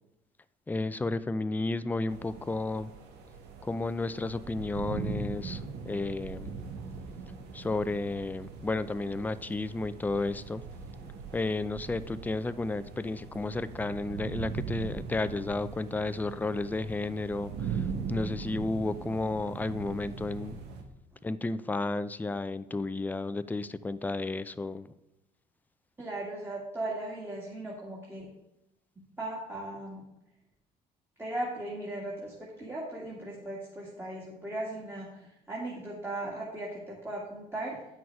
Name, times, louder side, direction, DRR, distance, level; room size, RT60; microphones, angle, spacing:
voice 1, 0.7-2.9 3.6-6.5 7.5-10.7 11.3-20.6 21.2-24.9, left 2 dB, 10° left, 13 dB, 0.4 m, -32 dB
sound 1, 2.1-20.8, right 5 dB, 85° right, 1.2 m, -40 dB
voice 2, 26.0-28.3 29.2-30.0 31.2-37.9, right 1 dB, 15° right, -5 dB, 2.0 m, -37 dB
9.4 x 6.2 x 4.7 m, 0.89 s
cardioid pair, 110°, 17 cm